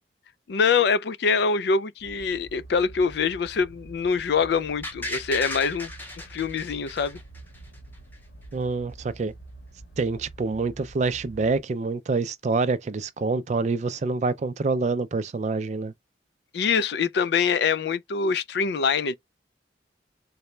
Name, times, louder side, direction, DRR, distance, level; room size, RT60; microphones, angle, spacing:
voice 1, 0.5-5.9 6.2-7.2 16.5-19.1, left 5 dB, 65° left, 0.4 m, -24 dB
sound 1, 2.0-11.6, right 2 dB, 85° left, 1.2 m, -46 dB
sound 2, 4.8-7.8 8.1-8.2, left 1 dB, 10° left, 0.6 m, -35 dB
voice 2, 8.5-9.3 10.0-15.9, right 3 dB, 40° right, 0.3 m, -26 dB
4.0 x 2.2 x 3.1 m
head